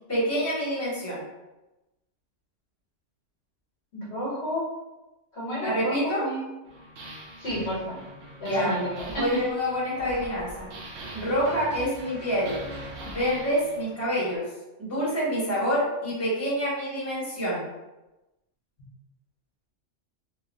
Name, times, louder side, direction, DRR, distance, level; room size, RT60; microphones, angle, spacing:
voice 1, 0.1-1.2 5.6-6.2 8.4-8.7 9.1-10.7 11.1-12.6 13.0-14.5 14.8-17.7, equal, 10° left, -9 dB, 1.3 m, -27 dB
voice 2, 4.1-4.7 5.3-6.4 7.4-8.0 8.4-9.2, equal, 60° left, -7 dB, 1.3 m, -31 dB
sound 1, 6.6-14.4, right 1 dB, 90° right, 1.0 m, -42 dB
3.0 x 2.7 x 2.6 m, 1.0 s
omnidirectional pair, 1.2 m